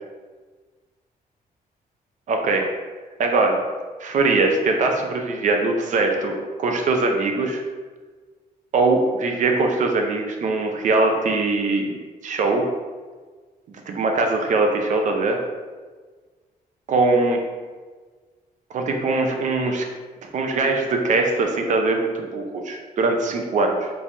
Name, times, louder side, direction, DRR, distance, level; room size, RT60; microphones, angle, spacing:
voice 1, 2.3-2.7 3.2-3.6 4.0-7.6 8.7-11.9 12.2-12.6 13.7-15.4 16.9-17.4 18.7-19.9 20.3-23.9, right 3 dB, 50° right, 3 dB, 0.6 m, -21 dB
5.1 x 3.4 x 2.7 m, 1.4 s
wide cardioid pair, 160°, 16 cm